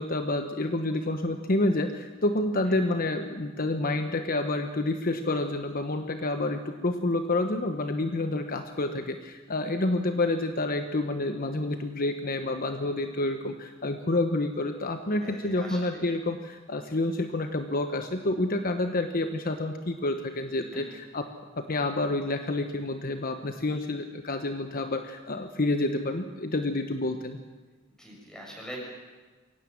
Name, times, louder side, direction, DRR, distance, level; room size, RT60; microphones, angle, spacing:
voice 1, 0.0-21.3 21.7-27.4, left 2 dB, 50° left, 7 dB, 1.1 m, -29 dB
voice 2, 15.2-16.0 20.7-21.0 28.0-28.8, equal, 5° left, -2 dB, 6.9 m, -43 dB
23.0 x 17.5 x 7.6 m, 1.3 s
head